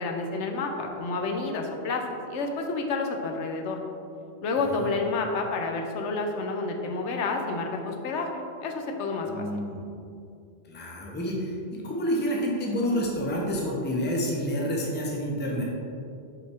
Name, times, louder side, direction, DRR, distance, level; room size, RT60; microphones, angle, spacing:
voice 1, 0.0-3.8 4.4-9.5, left 3 dB, 80° left, 3 dB, 1.0 m, -29 dB
voice 2, 4.6-4.9 9.3-9.8 10.7-15.6, equal, 10° left, -3 dB, 0.7 m, -29 dB
5.4 x 5.1 x 3.4 m, 2.5 s
omnidirectional pair, 1.2 m